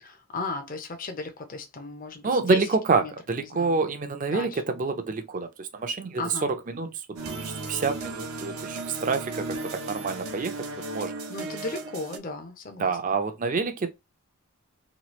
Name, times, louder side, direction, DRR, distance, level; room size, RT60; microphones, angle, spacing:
voice 1, 0.0-2.6 2.9-3.9 4.3-4.6 6.2-6.5 11.3-13.1, left 3 dB, 40° left, 0.6 m, -36 dB
voice 2, 2.2-10.7 10.9-11.1 12.8-13.9, right 4 dB, 35° right, 0.4 m, -27 dB
sound 1, 7.2-12.2, right 3 dB, 80° right, 0.6 m, -35 dB
3.0 x 2.3 x 3.0 m
head